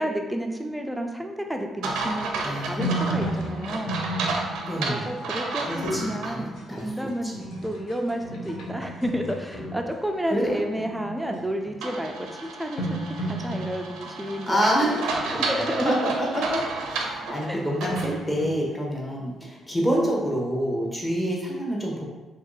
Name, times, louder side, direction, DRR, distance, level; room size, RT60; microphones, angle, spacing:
voice 1, 0.0-4.0 4.7-7.3 7.6-12.1 12.4-15.0 15.4-15.9 17.4-17.6, equal, 5° right, 3 dB, 0.4 m, -31 dB
sound 1, 1.8-6.3 6.8-6.9 11.8-18.2, right 3 dB, 90° right, 0.5 m, -32 dB
voice 2, 2.4-2.8 4.6-5.1 5.6-6.9 7.2-7.5 10.3-11.1 14.4-15.0 15.3-15.4 15.8-16.6 16.9-22.0, equal, 15° left, -2 dB, 1.0 m, -27 dB
sound 2, 2.6-10.8 11.2-11.6 12.4-12.5 12.8-15.3 17.9-19.7, right 1 dB, 80° left, 0.7 m, -34 dB
Harp, 14.5-19.5, left 2 dB, 60° left, 1.0 m, -42 dB
2.9 x 2.6 x 4.0 m, 1.2 s
cardioid pair, 90°, 0 cm